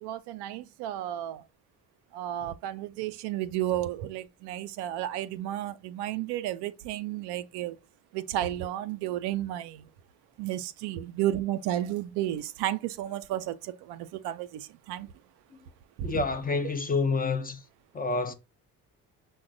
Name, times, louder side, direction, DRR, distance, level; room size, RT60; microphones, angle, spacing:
voice 1, 0.0-1.4 2.1-7.8 8.1-9.8 10.4-15.1 16.0-16.2, right 13 dB, 70° right, 0.5 m, -32 dB
voice 2, 16.0-17.6 17.9-18.3, left 4 dB, 20° left, 0.6 m, -28 dB
5.8 x 2.2 x 3.8 m
hypercardioid pair, 60°, 41 cm